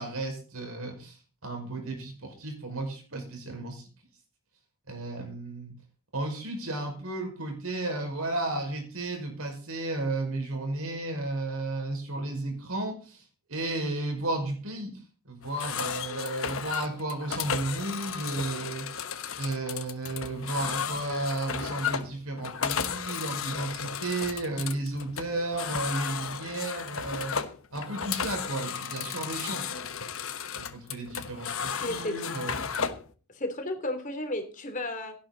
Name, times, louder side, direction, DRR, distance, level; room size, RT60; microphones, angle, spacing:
voice 1, 0.0-3.9 4.9-5.7 6.1-13.2 13.5-14.9 15.3-18.9 19.4-27.4 27.7-29.7 30.7-32.5, right 2 dB, 75° right, 4 dB, 5.4 m, -33 dB
sound 1, 15.4-33.1, left 6 dB, 65° left, 1.1 m, -34 dB
voice 2, 31.8-32.1 33.3-35.1, left 1 dB, 35° left, 6 dB, 3.1 m, -33 dB
17.0 x 11.5 x 4.0 m, 0.37 s
head